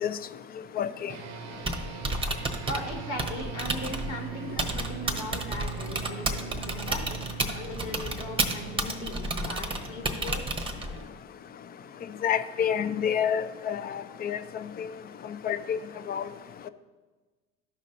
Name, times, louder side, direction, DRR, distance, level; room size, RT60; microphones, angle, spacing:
voice 1, 0.8-1.1 12.2-14.4 15.4-15.8 16.1-16.2, left 8 dB, 30° left, 13 dB, 0.4 m, -28 dB
sound 1, 1.1-10.8, right 10 dB, 50° right, 0.7 m, -41 dB
Typing, 1.5-11.1, right 2 dB, 15° right, 0.9 m, -32 dB
voice 2, 2.6-7.1 7.5-10.5, left 1 dB, 80° left, 1 dB, 1.9 m, -38 dB
13.0 x 5.3 x 2.6 m, 1.3 s
hypercardioid pair, 75°, 33 cm